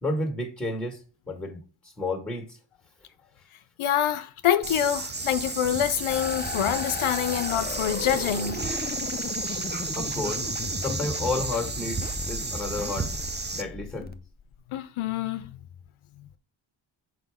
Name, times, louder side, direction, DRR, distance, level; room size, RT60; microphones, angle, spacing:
voice 1, 0.0-1.0 1.3-1.6 2.0-2.5 10.0-10.4 10.8-13.1 13.5-14.1, left 2 dB, 5° left, 1.8 m, -31 dB
voice 2, 3.8-8.6 14.7-15.6, left 10 dB, 90° left, 0.7 m, -26 dB
sound 1, 4.6-13.6, right 3 dB, 20° right, 0.6 m, -33 dB
sound 2, 6.1-14.6, left 4 dB, 20° left, 0.5 m, -36 dB
6.1 x 4.7 x 3.6 m
wide cardioid pair, 115°, 48 cm